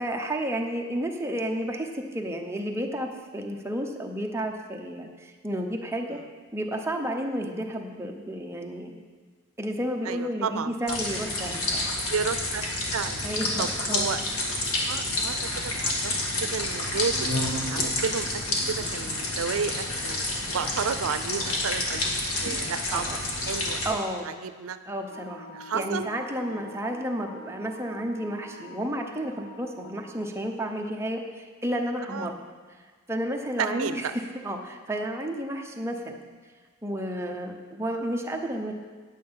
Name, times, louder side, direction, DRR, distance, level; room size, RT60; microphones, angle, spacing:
voice 1, 0.0-3.1 3.3-6.2 6.5-9.0 9.6-12.0 13.2-14.1 22.9-23.2 23.8-24.3 24.9-32.4 33.1-36.2 36.8-38.7, equal, 15° right, 2 dB, 0.8 m, -31 dB
voice 2, 10.0-11.0 12.1-13.2 13.6-14.2 14.6-15.5 15.8-16.1 16.4-17.2 17.7-20.2 20.5-24.0 24.2-24.8 25.5-26.1 26.5-26.7 32.1-32.3 33.6-34.1 37.2-37.4, right 6 dB, 85° right, 12 dB, 0.5 m, -32 dB
sound 1, 10.9-23.9, left 2 dB, 85° left, 1.8 m, -29 dB
Wind instrument woodwind instrument, 25.1-30.2, right 1 dB, 40° left, 1.9 m, -46 dB
9.0 x 8.8 x 5.7 m, 1.5 s
head